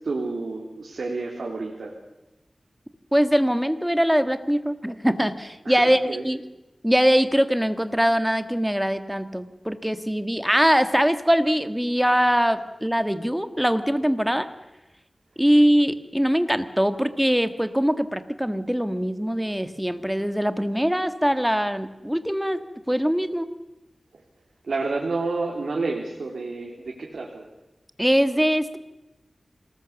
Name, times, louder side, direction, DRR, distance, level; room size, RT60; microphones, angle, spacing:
voice 1, 0.0-1.9 5.6-6.3 24.6-27.5, right 3 dB, 90° right, -1 dB, 3.2 m, -30 dB
voice 2, 3.1-6.4 6.8-14.5 15.4-22.6 22.9-23.5 28.0-28.8, equal, 5° right, 10 dB, 1.7 m, -22 dB
27.0 x 19.5 x 7.2 m, 0.97 s
wide cardioid pair, 60°, 0 cm